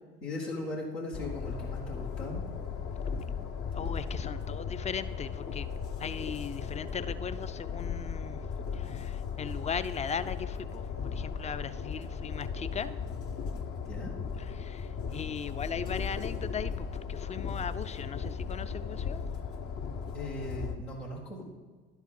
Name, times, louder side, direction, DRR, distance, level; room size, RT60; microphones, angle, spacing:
voice 1, 0.2-2.6 13.8-14.1 20.1-21.4, left 1 dB, 90° left, 1.7 m, -38 dB
Train, 1.1-20.8, left 6 dB, 55° left, 0.9 m, -36 dB
voice 2, 3.7-5.7 6.0-8.4 8.7-13.0 14.5-19.2, left 7 dB, 25° left, 0.5 m, -38 dB
11.5 x 4.8 x 5.4 m
hypercardioid pair, 50°, 29 cm